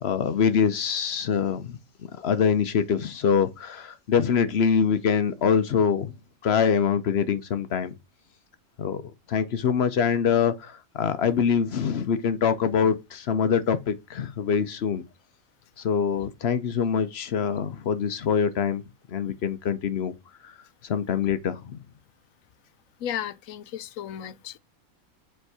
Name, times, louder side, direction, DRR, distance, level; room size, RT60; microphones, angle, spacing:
voice 1, 0.0-1.8 2.2-6.1 6.4-7.9 8.8-15.0 15.8-18.8 19.1-20.1 20.4-20.5 20.8-21.8, left 7 dB, 55° left, 0.9 m, -24 dB
voice 2, 23.0-24.6, left 10 dB, 85° left, 1.0 m, -34 dB
5.1 x 4.6 x 4.8 m
omnidirectional pair, 1.4 m